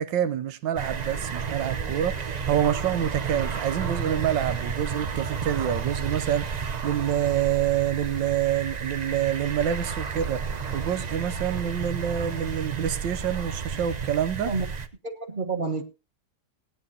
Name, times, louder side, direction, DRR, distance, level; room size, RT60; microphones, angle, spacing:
voice 1, 0.0-14.5, right 10 dB, 85° right, 1.6 m, -27 dB
sound 1, 0.8-14.9, right 6 dB, 55° right, 0.4 m, -32 dB
voice 2, 15.0-15.8, right 4 dB, 30° right, 1.3 m, -29 dB
19.0 x 9.8 x 2.8 m
omnidirectional pair, 2.0 m